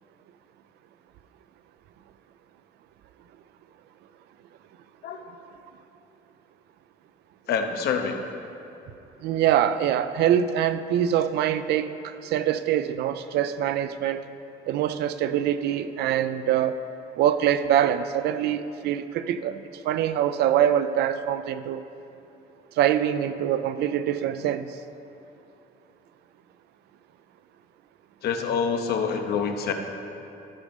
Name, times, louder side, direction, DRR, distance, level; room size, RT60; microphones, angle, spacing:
voice 1, 7.5-8.2 28.2-29.7, left 6 dB, 70° left, 5 dB, 0.9 m, -26 dB
voice 2, 9.2-14.3 14.7-16.8 17.2-21.8 22.8-24.7, right 10 dB, 75° right, 12 dB, 0.5 m, -24 dB
13.5 x 5.2 x 5.2 m, 2.9 s
cardioid pair, 110°, 17 cm